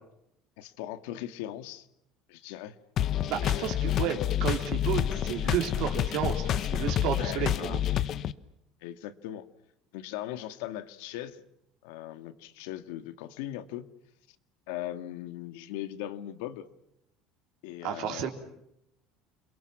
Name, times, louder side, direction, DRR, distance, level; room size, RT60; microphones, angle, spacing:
voice 1, 0.6-1.9 2.3-2.7 3.3-3.9 7.2-7.8 8.8-9.5 9.9-11.4 11.8-13.9 14.7-16.7 17.6-18.3, left 13 dB, 85° left, 10 dB, 1.9 m, -39 dB
sound 1, 3.0-8.3, left 10 dB, 40° left, 0.9 m, -28 dB
voice 2, 3.3-7.8 17.8-18.3, right 10 dB, 60° right, 4 dB, 3.8 m, -32 dB
29.5 x 22.5 x 7.3 m, 0.81 s
cardioid pair, 160°, 0 cm